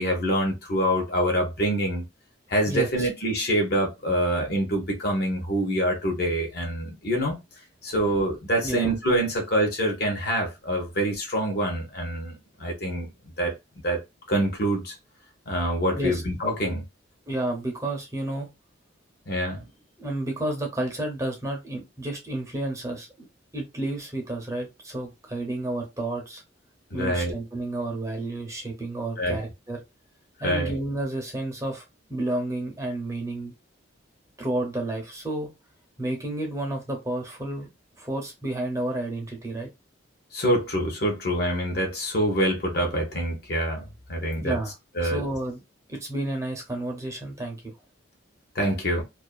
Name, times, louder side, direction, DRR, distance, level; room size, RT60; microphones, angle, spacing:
voice 1, 0.0-2.1 2.5-7.4 7.8-13.5 13.8-14.0 14.3-14.9 15.5-16.8 19.3-19.6 26.9-27.3 29.2-29.4 30.4-30.8 40.3-43.8 44.1-44.6 45.0-45.2 48.5-49.0, equal, 55° left, 0.8 m, -25 dB
voice 2, 2.7-3.1 8.6-8.9 15.9-16.2 17.3-18.5 20.0-23.3 23.5-26.4 26.9-29.8 30.4-31.8 32.1-33.5 34.4-35.5 36.0-37.7 38.0-39.7 44.4-44.7 45.0-45.6 45.9-47.7, right 1 dB, 15° right, 0.6 m, -31 dB
2.4 x 2.4 x 2.2 m
head